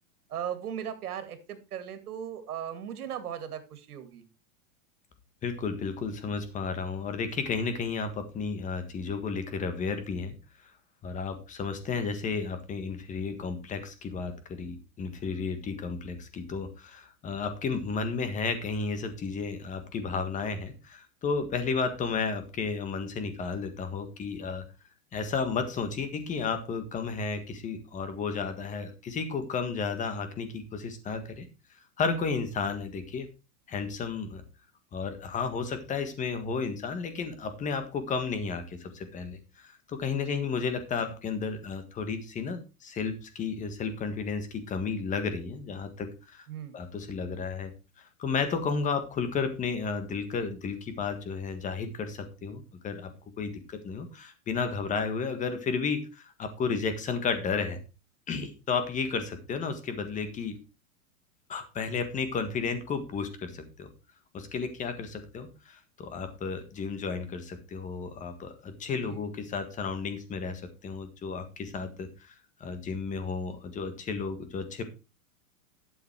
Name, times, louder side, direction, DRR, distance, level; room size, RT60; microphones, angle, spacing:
voice 1, 0.3-4.3 40.1-40.5 46.5-46.8 68.9-69.2, right 9 dB, 85° right, 10 dB, 2.4 m, -38 dB
voice 2, 5.4-10.4 11.0-24.7 25.1-31.5 32.0-33.3 33.7-34.4 34.9-46.5 46.7-47.7 48.2-53.1 53.4-57.8 58.3-60.5 61.5-63.9 64.3-72.3 72.6-74.8, left 5 dB, 15° left, 9 dB, 1.6 m, -33 dB
12.0 x 7.3 x 4.6 m, 0.30 s
supercardioid pair, 150°, 44 cm